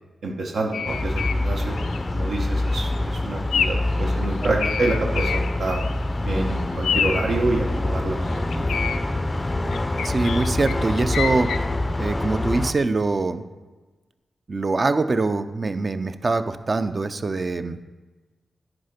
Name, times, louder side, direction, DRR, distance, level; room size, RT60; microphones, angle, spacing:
voice 1, 0.2-1.8 2.1-5.8 6.2-8.2 8.5-8.8, right 2 dB, 75° right, -1 dB, 1.1 m, -27 dB
sound 1, 0.7-1.4 1.8-2.0 2.5-2.8 3.5-3.9 4.2-6.0 6.3-6.4 6.8-7.3 8.3-9.0 9.7-11.6, left 7 dB, 90° left, 0.4 m, -27 dB
sound 2, 0.9-12.7, left 1 dB, 25° left, 0.4 m, -25 dB
voice 2, 10.0-11.5 12.0-13.4 14.5-17.8, right 3 dB, 45° right, 10 dB, 0.6 m, -23 dB
10.0 x 4.8 x 5.1 m, 1.2 s
cardioid pair, 55°, 0 cm